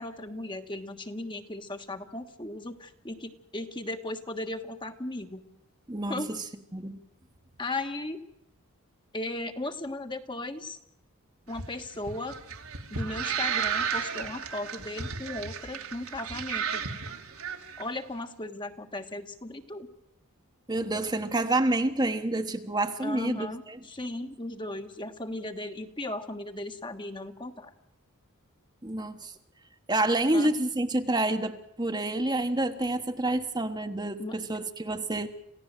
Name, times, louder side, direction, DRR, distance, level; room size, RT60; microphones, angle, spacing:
voice 1, 0.0-5.4 6.1-6.3 7.6-8.2 9.1-10.8 11.5-12.3 12.9-16.8 17.8-19.9 23.0-27.7 30.3-30.5 34.2-34.4, left 2 dB, 20° left, 1.4 m, -36 dB
voice 2, 5.9-6.3 6.7-7.0 20.7-23.8 28.8-29.3 29.9-35.3, right 2 dB, 20° right, 1.3 m, -28 dB
sound 1, 11.5-17.8, right 6 dB, 75° right, 2.7 m, -33 dB
28.0 x 16.0 x 7.6 m
head